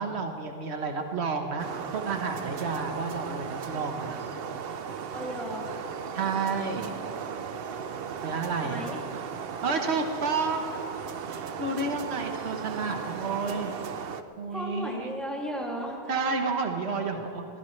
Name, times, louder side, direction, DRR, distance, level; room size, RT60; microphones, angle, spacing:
voice 1, 0.0-4.2 6.1-6.9 8.2-8.9 9.6-10.7 11.6-13.7 14.4-15.1 16.1-17.5, right 4 dB, 85° right, 4 dB, 1.4 m, -30 dB
sound 1, 1.6-14.2, right 6 dB, 65° right, 0.8 m, -36 dB
voice 2, 5.1-5.7 8.6-9.0 14.5-16.1, equal, ahead, -3 dB, 2.5 m, -35 dB
22.0 x 16.5 x 3.2 m, 2.8 s
omnidirectional pair, 1.1 m